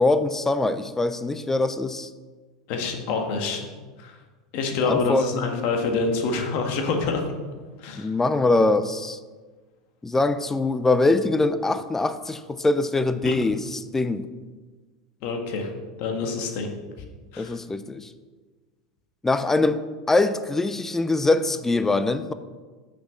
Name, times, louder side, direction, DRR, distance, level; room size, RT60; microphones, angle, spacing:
voice 1, 0.0-2.1 4.9-5.7 7.9-9.2 10.0-14.3 17.4-18.1 19.2-19.8 20.1-22.3, left 2 dB, 10° left, 12 dB, 0.6 m, -23 dB
voice 2, 2.7-3.7 4.0-4.1 4.5-7.3 7.8-8.1 13.2-13.3 15.2-15.7 16.0-16.7 17.3-17.6, left 4 dB, 55° left, 3 dB, 1.7 m, -26 dB
6.2 x 6.2 x 7.4 m, 1.4 s
hypercardioid pair, 95°, 3 cm